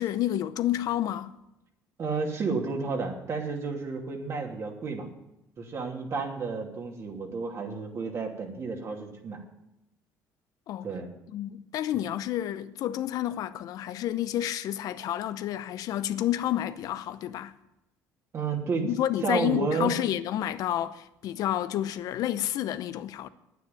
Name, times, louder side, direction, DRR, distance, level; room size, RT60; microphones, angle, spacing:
voice 1, 0.0-1.3 10.7-10.9 11.3-17.5 18.8-23.3, left 12 dB, 65° left, 0.7 m, -30 dB
voice 2, 2.0-5.1 5.6-9.4 10.8-11.1 18.3-18.9 19.2-19.9, right 4 dB, 45° right, 2.7 m, -31 dB
9.6 x 9.4 x 9.3 m
cardioid pair, 110°, 7 cm